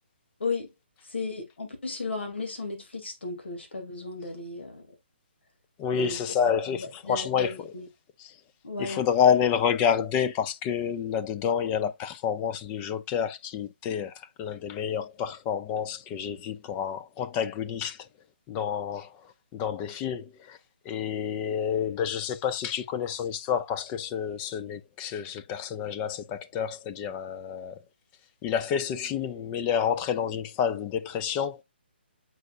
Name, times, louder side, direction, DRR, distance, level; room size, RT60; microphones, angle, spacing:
voice 1, 1.1-4.8 5.9-6.2 6.7-7.9 8.6-9.0, left 3 dB, 80° left, 2.8 m, -35 dB
voice 2, 5.8-7.7 8.2-8.3 8.8-18.1 18.5-19.2 19.5-20.6 20.8-27.8 28.4-31.6, left 8 dB, 20° left, 0.6 m, -29 dB
7.7 x 5.5 x 2.5 m
hypercardioid pair, 150°, 6 cm